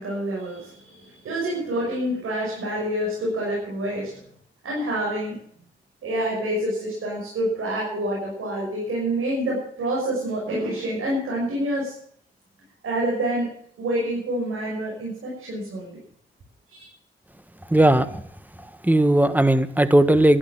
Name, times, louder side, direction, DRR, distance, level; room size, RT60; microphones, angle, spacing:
voice 1, 0.0-4.2 4.6-5.3 6.0-11.9 12.8-13.5 13.8-16.0 16.7-16.9, right 1 dB, 85° right, -4 dB, 6.1 m, -27 dB
voice 2, 17.7-18.2 18.8-20.4, right 1 dB, 10° right, 12 dB, 1.4 m, -17 dB
11.5 x 11.5 x 7.3 m, 0.62 s
cardioid pair, 55°, 21 cm